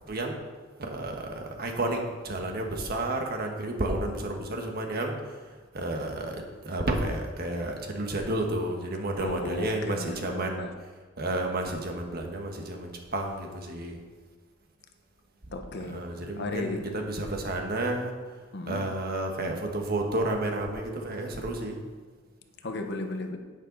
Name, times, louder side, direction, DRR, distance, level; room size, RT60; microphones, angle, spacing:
voice 1, 0.8-5.2 5.7-10.7 11.2-14.0 15.8-18.1 18.7-21.8, right 1 dB, 50° right, 2 dB, 1.4 m, -31 dB
voice 2, 9.2-10.7 15.5-16.9 18.5-18.8 22.6-23.4, left 2 dB, 60° left, 5 dB, 1.0 m, -35 dB
10.5 x 8.6 x 4.0 m, 1.4 s
head